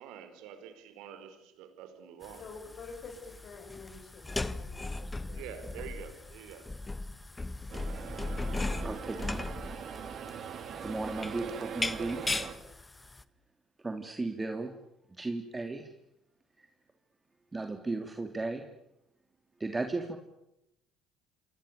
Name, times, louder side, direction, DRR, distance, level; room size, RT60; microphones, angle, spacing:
voice 1, 0.0-2.5 5.3-6.7, right 8 dB, 65° right, 5.2 m, -46 dB
sound 1, 2.2-13.2, left 2 dB, 15° left, 1.6 m, -38 dB
voice 2, 2.4-5.9, left 4 dB, 50° left, 7.3 m, -48 dB
sound 2, 7.7-12.5, right 8 dB, 50° right, 3.4 m, -41 dB
voice 3, 8.8-9.5 10.8-12.4 13.8-14.8 15.1-15.9 16.6-16.7 17.5-18.6 19.6-20.2, right 3 dB, 20° right, 3.4 m, -35 dB
28.0 x 27.5 x 7.1 m
hypercardioid pair, 60°, 0 cm